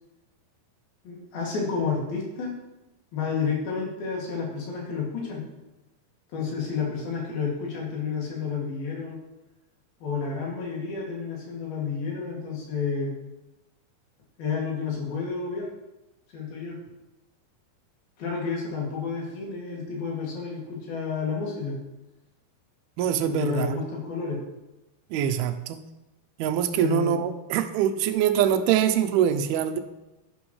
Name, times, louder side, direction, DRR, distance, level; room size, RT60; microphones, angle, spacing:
voice 1, 1.0-2.6 3.1-5.5 6.3-9.2 10.0-13.1 14.4-15.7 16.3-16.8 18.2-21.7 23.2-24.4 26.8-27.2, left 5 dB, 70° left, -3 dB, 4.1 m, -30 dB
voice 2, 23.0-23.7 25.1-25.8 26.4-29.8, right 9 dB, 80° right, 8 dB, 2.5 m, -24 dB
11.5 x 10.5 x 3.2 m, 0.97 s
omnidirectional pair, 4.6 m